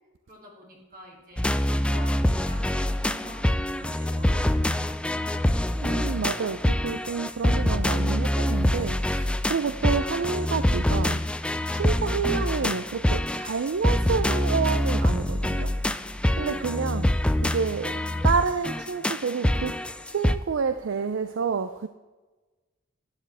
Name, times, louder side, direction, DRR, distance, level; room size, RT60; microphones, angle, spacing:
voice 1, 0.3-5.2 16.4-16.7, equal, 45° right, 2.8 m, -46 dB
sound 1, 1.4-20.4, left 1 dB, 5° left, 0.3 m, -25 dB
voice 2, 5.8-11.2 11.7-15.7 16.4-17.1 17.4-21.9, right 5 dB, 70° right, 0.5 m, -29 dB
12.0 x 9.7 x 3.4 m
head